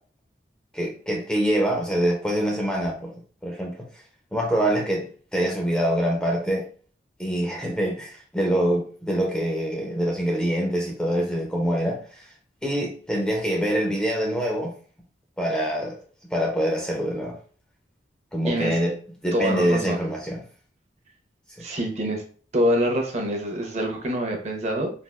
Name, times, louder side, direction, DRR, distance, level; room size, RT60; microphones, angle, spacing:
voice 1, 0.7-3.8 4.3-6.7 7.2-12.0 12.6-14.7 15.4-16.0 16.3-17.4 18.3-18.9 19.2-20.4, equal, 5° left, 0.5 m, -25 dB
voice 2, 18.4-18.8 19.3-20.1 21.6-22.2 22.5-24.9, equal, 40° right, 0.6 m, -25 dB
3.4 x 2.3 x 2.2 m
head